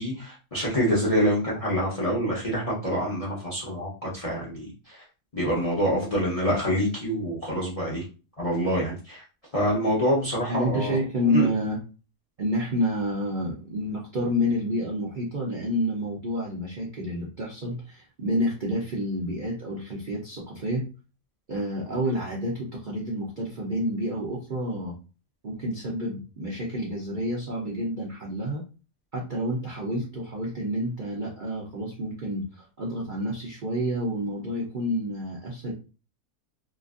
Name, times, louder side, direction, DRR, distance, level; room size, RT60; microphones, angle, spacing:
voice 1, 0.0-5.0 5.3-8.0 8.4-9.2 9.5-11.0 11.3-11.5, equal, 35° left, -5 dB, 0.6 m, -26 dB
voice 2, 10.5-11.8 12.4-20.9 21.5-24.9 25.4-28.6 29.1-35.7, equal, 50° right, -4 dB, 0.5 m, -29 dB
2.9 x 2.5 x 2.4 m, 0.33 s
omnidirectional pair, 1.7 m